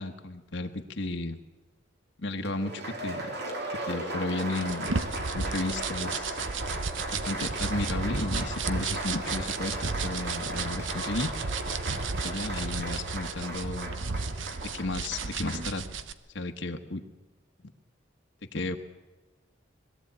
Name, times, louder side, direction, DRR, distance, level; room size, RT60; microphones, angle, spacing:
voice 1, 0.0-1.4 2.2-3.2 3.7-4.9 5.2-6.4 7.1-11.3 11.9-13.9 14.7-15.9 16.3-17.0 18.5-18.8, left 2 dB, 70° left, 4 dB, 1.3 m, -33 dB
Applause, 2.4-15.7, right 1 dB, 60° right, 3.1 m, -36 dB
sound 1, 4.4-16.1, right 4 dB, 85° right, 1.0 m, -34 dB
21.5 x 14.5 x 8.7 m, 1.2 s
head